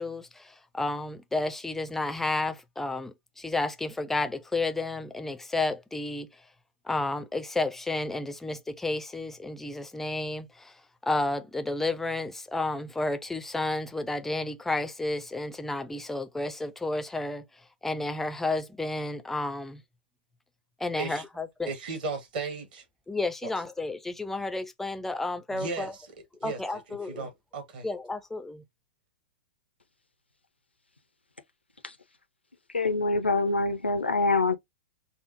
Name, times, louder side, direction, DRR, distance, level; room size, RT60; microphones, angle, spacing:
voice 1, 0.0-6.5 6.8-19.8 20.8-21.7 23.1-25.9 26.4-27.3 27.8-28.6, left 2 dB, 5° left, 0.4 m, -32 dB
voice 2, 21.7-22.8 25.5-25.9 26.4-26.6 27.1-27.8, right 3 dB, 55° right, 1.6 m, -35 dB
voice 3, 32.7-34.5, left 3 dB, 85° left, 0.6 m, -25 dB
5.4 x 2.0 x 2.8 m
figure-of-eight pair, 105°, 6 cm